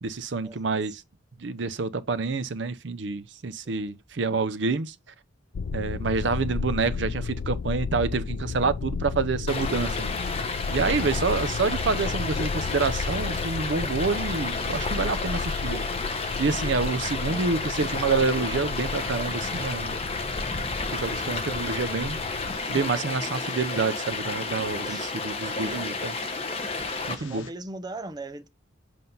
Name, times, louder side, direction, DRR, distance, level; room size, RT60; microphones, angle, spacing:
voice 1, 0.0-1.0 1.4-4.9 5.7-10.1 10.7-15.8 16.4-20.0 20.9-22.2 22.7-26.2 27.1-27.5, right 4 dB, 65° right, 0.6 m, -28 dB
sound 1, 5.5-22.6, left 5 dB, 60° left, 0.4 m, -33 dB
Stream, 9.5-27.1, left 3 dB, 30° left, 1.0 m, -31 dB
voice 2, 20.8-21.4 24.8-25.4 27.1-28.5, right 2 dB, 20° right, 0.6 m, -40 dB
sound 2, 22.5-27.5, left 5 dB, 75° left, 1.2 m, -49 dB
7.7 x 2.6 x 5.4 m
head